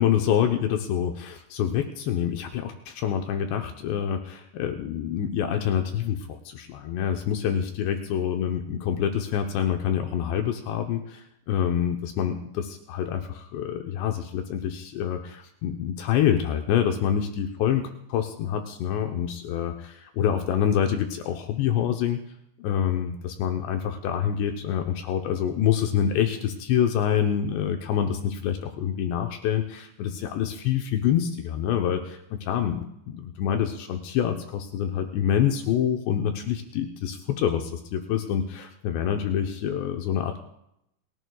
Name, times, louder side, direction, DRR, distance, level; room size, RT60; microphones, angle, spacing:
voice 1, 0.0-17.8 18.1-22.2 22.6-40.4, left 9 dB, 80° left, 4 dB, 3.0 m, -26 dB
28.5 x 17.5 x 2.3 m, 0.81 s
omnidirectional pair, 5.1 m